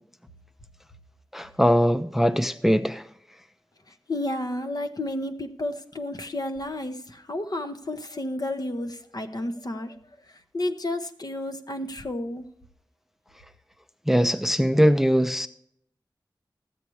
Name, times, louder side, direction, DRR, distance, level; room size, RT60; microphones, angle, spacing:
voice 1, 1.3-3.1 14.1-15.5, equal, 5° right, 0.4 m, -21 dB
voice 2, 3.9-10.0 10.3-12.4, left 1 dB, 55° left, 0.9 m, -31 dB
14.0 x 8.2 x 3.1 m
wide cardioid pair, 70°, 8 cm